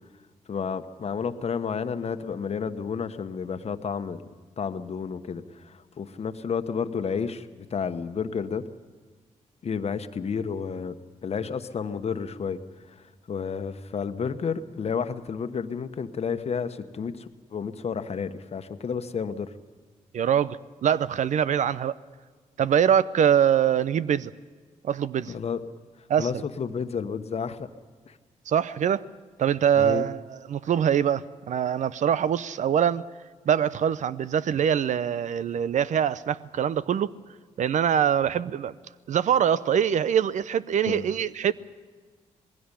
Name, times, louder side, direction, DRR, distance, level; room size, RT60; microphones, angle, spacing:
voice 1, 0.5-4.2 4.6-8.7 9.6-11.0 11.2-12.6 12.9-19.5 25.3-25.6 26.2-27.7 28.1-28.2 29.8-30.0 40.9-41.0, left 6 dB, 55° left, 1.2 m, -31 dB
voice 2, 20.1-21.9 22.6-24.3 24.8-25.3 26.1-26.3 28.5-29.0 29.4-33.0 33.5-37.2 37.6-38.7 39.1-41.5, right 9 dB, 70° right, 0.7 m, -23 dB
20.0 x 16.0 x 10.0 m
cardioid pair, 80°, 13 cm